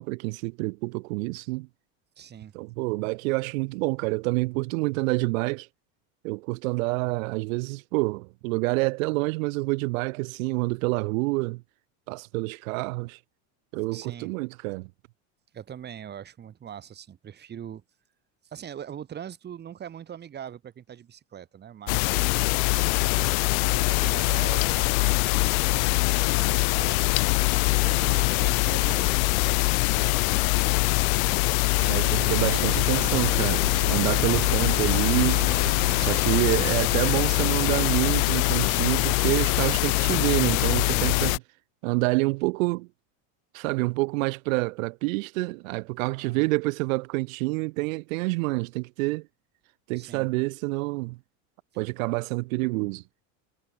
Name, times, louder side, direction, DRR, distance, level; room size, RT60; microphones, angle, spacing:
voice 1, 0.0-1.7 2.5-5.7 6.2-11.6 12.1-13.2 13.7-14.9 31.9-35.5 35.9-41.4 41.8-42.9 43.5-49.3 49.9-51.2 51.8-53.0, right 25 dB, 75° right, 2.7 m, -27 dB
voice 2, 2.2-2.5 13.9-14.3 15.5-17.8 18.4-22.3 23.0-30.9 46.2-46.5 50.0-50.3, right 9 dB, 25° right, 5.8 m, -42 dB
sound 1, 21.9-41.4, left 28 dB, 80° left, 0.5 m, -23 dB
sound 2, 31.8-38.1, right 36 dB, 55° right, 3.8 m, -37 dB
cardioid pair, 170°, 41 cm